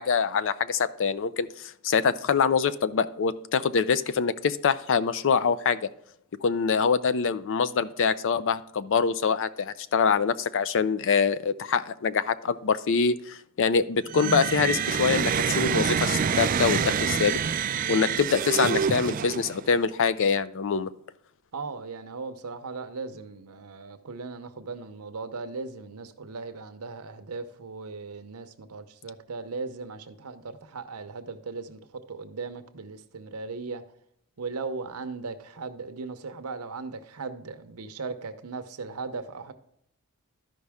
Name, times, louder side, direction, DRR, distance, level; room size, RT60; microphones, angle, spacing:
voice 1, 0.0-5.8 6.4-17.4 17.9-20.9, left 5 dB, 60° left, 0.5 m, -25 dB
sound 1, 14.1-19.7, right 6 dB, 40° right, 0.3 m, -27 dB
voice 2, 21.5-33.8 34.4-39.5, right 4 dB, 80° right, 0.8 m, -38 dB
12.5 x 5.3 x 3.5 m
head